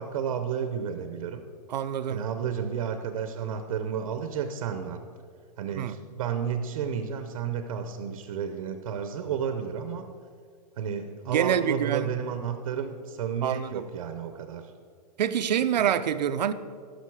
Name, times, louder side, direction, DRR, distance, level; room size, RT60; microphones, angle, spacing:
voice 1, 0.0-1.4 2.1-5.0 5.6-10.0 10.8-14.7 15.8-15.9, right 7 dB, 55° right, 0.8 m, -32 dB
voice 2, 1.7-2.2 5.7-6.0 11.3-12.1 13.4-13.8 15.2-16.5, right 9 dB, 80° right, 0.7 m, -26 dB
16.0 x 6.7 x 4.8 m
hypercardioid pair, 170°, 21 cm